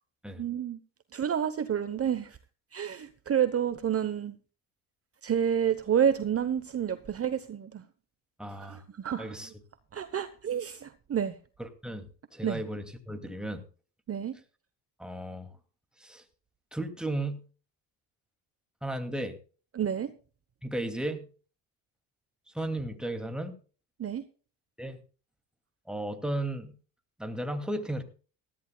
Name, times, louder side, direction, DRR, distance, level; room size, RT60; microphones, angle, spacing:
voice 1, 0.4-0.8 1.1-2.4 2.7-4.3 5.2-7.8 8.6-9.3 9.9-11.4 12.4-12.6 14.1-14.4 19.7-20.1 24.0-24.2, right 8 dB, 35° right, 0.9 m, -29 dB
voice 2, 8.4-8.8 9.2-9.5 11.6-12.0 12.3-13.6 15.0-15.5 16.0-16.2 16.7-17.4 18.8-19.4 20.6-21.3 22.5-23.5 24.8-25.0 25.9-26.7 27.2-28.0, right 1 dB, ahead, 2.4 m, -34 dB
18.5 x 14.0 x 2.3 m
cardioid pair, 100°, 40 cm